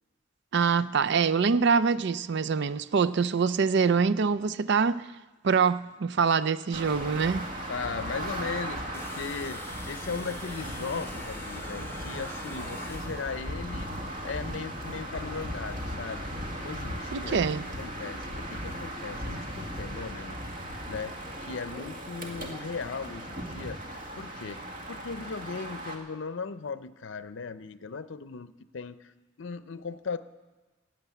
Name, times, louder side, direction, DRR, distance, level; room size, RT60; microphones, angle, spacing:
voice 1, 0.5-5.1 5.4-7.5 17.1-17.7, right 5 dB, 60° right, 0.4 m, -25 dB
sound 1, 6.7-26.0, equal, 45° right, 1.8 m, -37 dB
voice 2, 7.7-13.9 14.2-16.2 16.6-17.4 17.8-20.4 20.9-21.1 21.4-24.6 24.9-29.1 29.4-30.2, left 5 dB, 65° left, 0.6 m, -37 dB
sound 2, 8.9-13.3, left 3 dB, 10° left, 0.9 m, -45 dB
15.5 x 7.9 x 9.3 m
head